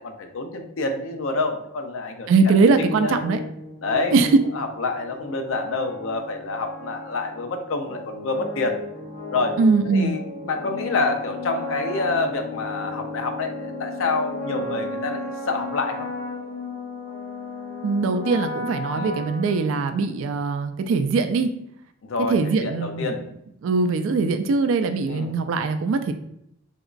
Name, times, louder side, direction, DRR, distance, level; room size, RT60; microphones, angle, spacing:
voice 1, 0.0-2.3 2.9-3.2 3.8-4.1 4.5-8.8 9.3-9.6 9.9-16.1 18.9-19.2 22.1-23.2 25.1-25.3, left 3 dB, 75° left, 5 dB, 0.5 m, -27 dB
voice 2, 2.3-3.4 4.1-4.3 9.6-10.2 17.8-21.5 22.3-23.2 23.6-26.1, right 4 dB, 75° right, 9 dB, 0.3 m, -21 dB
sound 1, 2.6-20.2, left 2 dB, 45° left, 1.2 m, -35 dB
3.5 x 2.9 x 2.4 m, 0.75 s
head